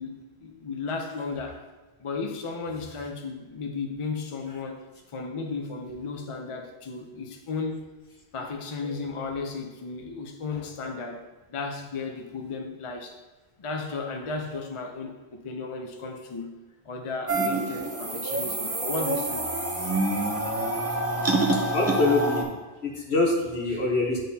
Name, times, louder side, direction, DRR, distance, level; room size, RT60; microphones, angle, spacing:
voice 1, 0.0-1.7 2.0-4.8 5.1-7.9 8.3-13.2 13.6-16.6 16.8-19.5, left 4 dB, 35° left, 3 dB, 0.6 m, -34 dB
sound 1, 17.3-22.4, right 2 dB, 20° right, 0.4 m, -27 dB
voice 2, 21.7-22.5 22.8-24.2, left 2 dB, 80° left, -2 dB, 1.5 m, -25 dB
10.0 x 3.8 x 2.8 m, 1.2 s
omnidirectional pair, 1.1 m